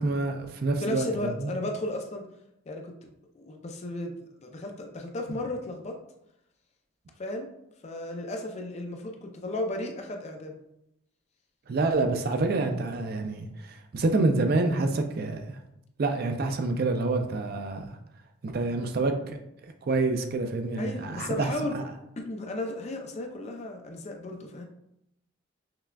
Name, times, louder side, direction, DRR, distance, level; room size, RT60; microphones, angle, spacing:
voice 1, 0.0-1.1 1.4-1.5 11.7-15.6 16.0-18.0 18.4-19.4 19.8-21.8, right 3 dB, 50° right, 5 dB, 0.4 m, -27 dB
voice 2, 0.8-2.3 2.7-4.1 4.4-6.0 7.2-7.5 7.8-10.6 20.8-21.8 22.2-24.7, left 1 dB, 35° left, 3 dB, 0.4 m, -34 dB
5.8 x 2.2 x 2.2 m, 0.80 s
head